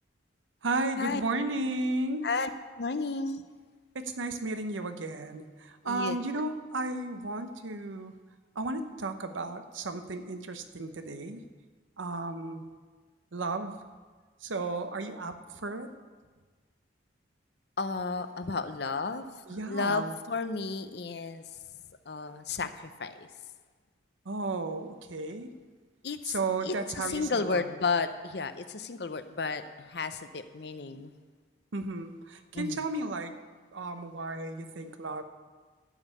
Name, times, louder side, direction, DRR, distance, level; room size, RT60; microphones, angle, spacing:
voice 1, 0.6-2.3 3.9-8.1 8.6-11.5 12.0-12.7 13.3-13.8 14.4-15.9 19.5-20.1 24.3-25.5 26.2-27.7 31.7-33.3 33.7-35.2, right 2 dB, 90° right, 8 dB, 0.8 m, -34 dB
voice 2, 2.8-3.4 5.8-6.2 17.8-21.4 22.1-23.3 26.0-26.4 26.6-31.1 32.5-32.8, left 4 dB, 60° left, 10 dB, 0.6 m, -33 dB
12.0 x 5.5 x 8.3 m, 1.4 s
head